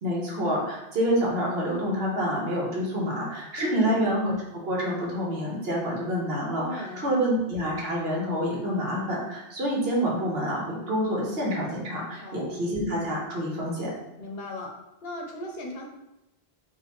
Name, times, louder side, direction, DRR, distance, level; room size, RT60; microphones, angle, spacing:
voice 1, 0.0-13.9, equal, 65° right, -3 dB, 1.2 m, -27 dB
voice 2, 3.6-4.1 6.6-7.1 12.2-12.5 14.2-14.7 15.0-15.9, left 1 dB, 70° left, 1 dB, 0.8 m, -36 dB
3.7 x 2.6 x 3.0 m, 0.93 s
omnidirectional pair, 1.1 m